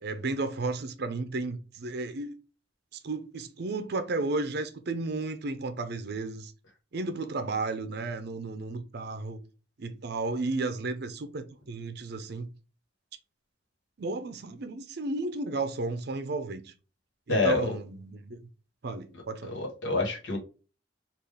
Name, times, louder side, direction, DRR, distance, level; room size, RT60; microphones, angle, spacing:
voice 1, 0.0-2.3 3.0-6.5 6.9-9.4 9.8-12.5 14.0-16.7 17.3-18.4 18.8-19.5, right 3 dB, 60° right, 0.5 m, -33 dB
voice 2, 17.3-17.6 19.4-20.4, left 3 dB, 85° left, 1.3 m, -27 dB
3.8 x 2.4 x 3.3 m
head